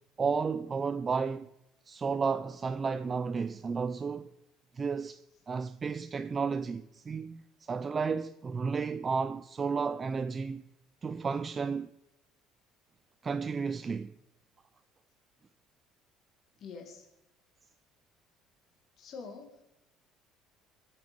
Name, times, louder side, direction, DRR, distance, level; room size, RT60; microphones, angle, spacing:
voice 1, 0.2-1.5 1.9-4.3 4.7-10.6 11.0-11.9 13.2-14.1, right 5 dB, 20° right, 0.4 m, -32 dB
voice 2, 16.6-17.1 19.0-19.6, left 5 dB, 40° left, 2.2 m, -45 dB
24.5 x 8.6 x 5.3 m
cardioid pair, 160°, 0 cm